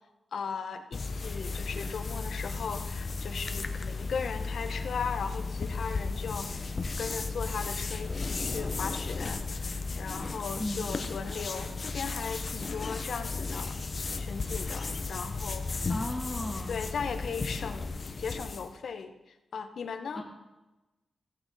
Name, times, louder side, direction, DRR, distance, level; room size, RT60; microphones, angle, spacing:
voice 1, 0.3-6.5 7.0-13.8 14.2-16.1 16.7-20.2, left 6 dB, 75° left, 7 dB, 1.0 m, -37 dB
sound 1, 0.9-18.7, left 3 dB, 40° left, 0.9 m, -34 dB
voice 2, 10.6-11.1 15.9-16.8 20.1-20.2, left 1 dB, 10° left, 1 dB, 2.2 m, -36 dB
15.5 x 8.7 x 4.1 m, 1.0 s
cardioid pair, 95°, 0 cm